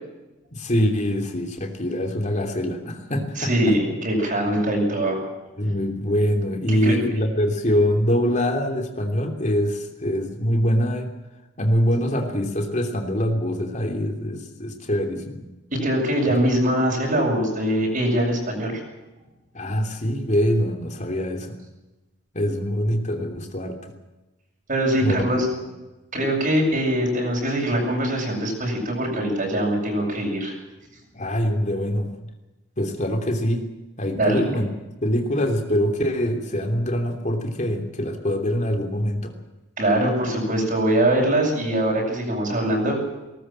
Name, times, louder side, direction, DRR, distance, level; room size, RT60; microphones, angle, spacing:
voice 1, 0.5-3.7 5.6-11.1 11.6-15.4 19.5-21.6 22.3-23.9 25.0-25.3 31.1-32.1 32.8-33.6 34.0-34.7 35.0-39.3, equal, 40° left, 4 dB, 3.0 m, -24 dB
voice 2, 3.4-5.2 5.6-5.7 6.7-7.0 15.7-18.8 24.7-25.5 26.1-30.6 34.2-34.4 39.8-43.0, right 1 dB, 45° right, -1 dB, 8.0 m, -22 dB
20.5 x 19.0 x 7.6 m, 1.1 s
head